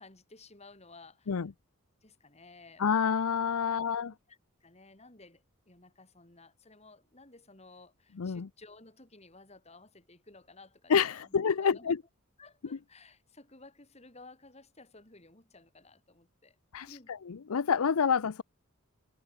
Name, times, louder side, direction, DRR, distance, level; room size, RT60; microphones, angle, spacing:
voice 1, 0.0-1.5 2.0-2.8 3.7-4.0 4.3-12.0 12.4-16.6 16.9-17.2, left 3 dB, 30° left, 3.3 m, -55 dB
voice 2, 2.8-4.1 8.2-8.5 10.9-12.0 16.7-16.9 17.5-18.4, left 6 dB, 90° left, 0.6 m, -27 dB
head